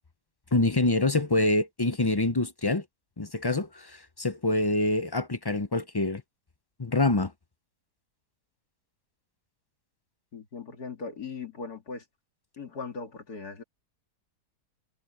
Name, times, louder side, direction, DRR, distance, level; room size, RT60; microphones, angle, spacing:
voice 1, 0.5-2.8 3.2-6.2 6.8-7.3, left 2 dB, 30° left, 0.4 m, -26 dB
voice 2, 10.3-12.0 12.6-13.6, left 4 dB, 70° left, 3.1 m, -39 dB
omnidirectional pair, 1.7 m